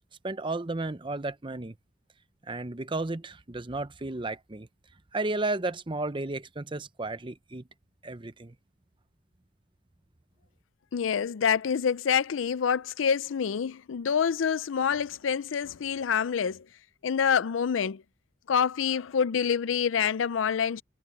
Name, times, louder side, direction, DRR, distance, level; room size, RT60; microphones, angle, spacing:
voice 1, 0.2-1.7 2.5-4.7 5.1-7.6 8.0-8.5, right 2 dB, 25° right, 0.8 m, -33 dB
voice 2, 10.9-16.6 17.0-18.0 18.5-20.8, left 7 dB, 85° left, 0.4 m, -27 dB
head